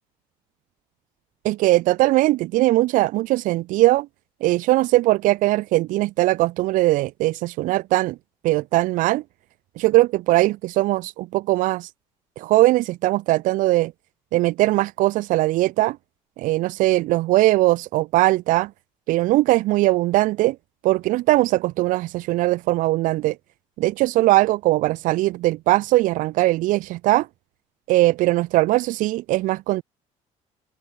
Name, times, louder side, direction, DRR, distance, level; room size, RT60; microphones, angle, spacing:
voice 1, 1.4-4.1 4.4-8.2 8.4-9.2 9.8-11.9 12.4-13.9 14.3-16.0 16.4-18.7 19.1-20.6 20.8-23.4 23.8-27.3 27.9-29.8, right 18 dB, 70° right, 6.0 m, -20 dB
open air
cardioid pair, 175°, 14 cm